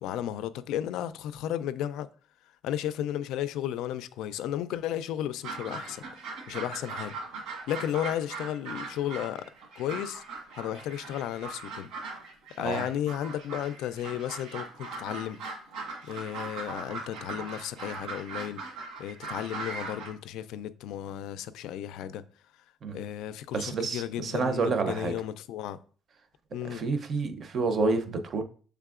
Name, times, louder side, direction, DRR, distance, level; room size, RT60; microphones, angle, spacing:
voice 1, 0.0-2.1 2.6-6.0 6.5-7.2 7.7-9.5 9.8-10.2 10.5-11.9 12.6-15.4 16.1-18.6 19.0-22.2 22.9-25.8 26.5-26.8, left 11 dB, 85° left, 0.3 m, -34 dB
sound 1, 5.4-20.1, right 4 dB, 85° right, 1.5 m, -40 dB
voice 2, 23.5-25.1 26.6-28.4, right 4 dB, 40° right, 0.6 m, -29 dB
6.5 x 3.4 x 2.4 m
cardioid pair, 130°, 0 cm